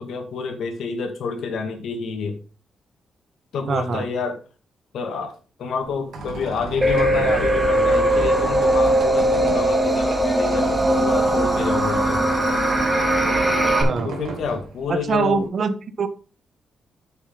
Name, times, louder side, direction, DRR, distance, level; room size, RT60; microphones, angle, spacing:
voice 1, 0.0-2.4 3.5-4.4 4.9-12.3 14.0-15.5, left 5 dB, 75° left, 6 dB, 2.0 m, -29 dB
voice 2, 3.7-4.1 13.8-14.1 14.9-16.1, right 5 dB, 50° right, 11 dB, 1.0 m, -23 dB
Squeak, 5.8-15.4, right 4 dB, 85° right, 2.8 m, -34 dB
sound 1, 6.8-13.8, right 1 dB, 15° right, 2.1 m, -19 dB
9.2 x 6.9 x 3.8 m, 0.35 s
cardioid pair, 140°, 0 cm